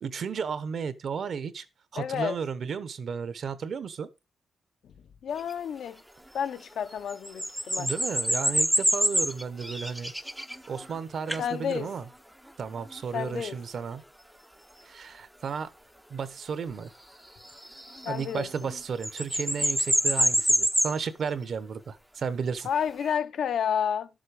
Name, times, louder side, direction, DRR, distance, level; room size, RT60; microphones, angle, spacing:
voice 1, 0.0-1.6 1.9-4.1 7.7-10.1 10.7-12.1 12.6-14.0 14.8-15.7 16.1-16.9 18.1-22.7, right 6 dB, 45° right, 1.0 m, -33 dB
voice 2, 2.0-2.4 4.8-4.9 5.2-6.0 6.3-7.9 11.3-11.9 13.1-13.6 18.0-18.5 22.6-24.1, left 8 dB, 60° left, 0.8 m, -30 dB
sound 1, 5.4-5.5 6.9-10.9 11.3-11.5 12.9-13.0 17.4-18.8 19.0-21.0 22.7-23.1, equal, ahead, 0.6 m, -26 dB
11.5 x 7.4 x 4.9 m
wide cardioid pair, 175°, 0 cm